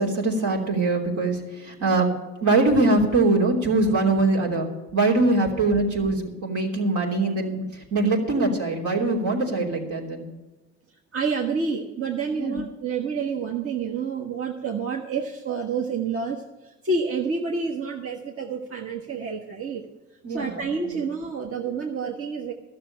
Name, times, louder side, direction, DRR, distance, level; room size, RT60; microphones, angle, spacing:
voice 1, 0.0-2.1 2.4-10.3 12.4-12.6 20.2-21.0, right 2 dB, 75° right, -1 dB, 3.2 m, -23 dB
voice 2, 11.1-19.8 20.3-22.5, right 5 dB, 50° right, -1 dB, 1.5 m, -28 dB
13.0 x 6.9 x 8.7 m, 1.1 s
cardioid pair, 90°, 30 cm